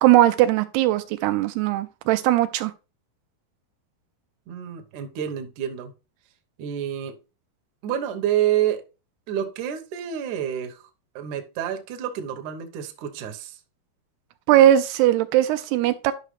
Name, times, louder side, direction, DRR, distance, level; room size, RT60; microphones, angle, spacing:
voice 1, 0.0-2.7 14.5-16.1, right 13 dB, 85° right, 2.6 m, -19 dB
voice 2, 4.5-5.9 6.6-7.2 7.8-8.8 9.3-10.8 11.2-13.6, right 10 dB, 65° right, 2.1 m, -28 dB
11.5 x 5.9 x 3.2 m
omnidirectional pair, 4.8 m